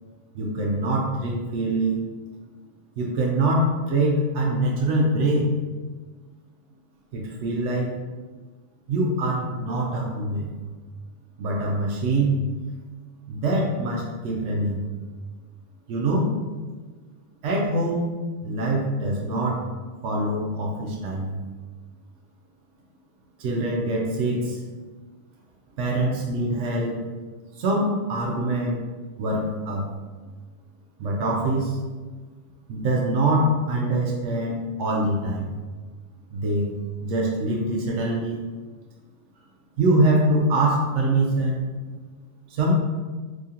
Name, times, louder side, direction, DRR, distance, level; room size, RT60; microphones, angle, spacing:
voice 1, 0.3-2.0 3.0-5.5 7.1-7.9 8.9-10.5 11.4-12.5 13.3-14.8 15.9-16.4 17.4-18.0 18.4-19.6 20.0-21.4 23.4-24.6 25.8-27.0 27.6-28.8 29.2-29.9 31.0-31.8 32.7-35.5 36.3-36.7 37.0-38.4 39.8-41.6 42.5-42.7, right 1 dB, 85° right, -2 dB, 0.9 m, -24 dB
3.7 x 2.8 x 2.8 m, 1.4 s
omnidirectional pair, 1.2 m